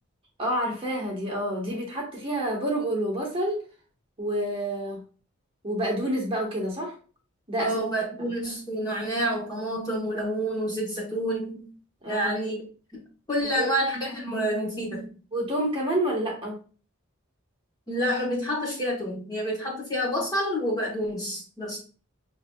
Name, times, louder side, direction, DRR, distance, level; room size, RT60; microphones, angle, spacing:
voice 1, 0.4-3.6 4.2-5.0 5.6-7.0 7.5-7.8 8.2-8.3 12.0-12.3 13.5-13.7 15.3-16.6, right 1 dB, 25° right, 1.1 m, -28 dB
voice 2, 7.6-11.7 12.0-12.6 12.9-13.0 13.3-15.1 17.9-21.8, equal, 20° left, 1.0 m, -28 dB
5.6 x 2.7 x 2.2 m
head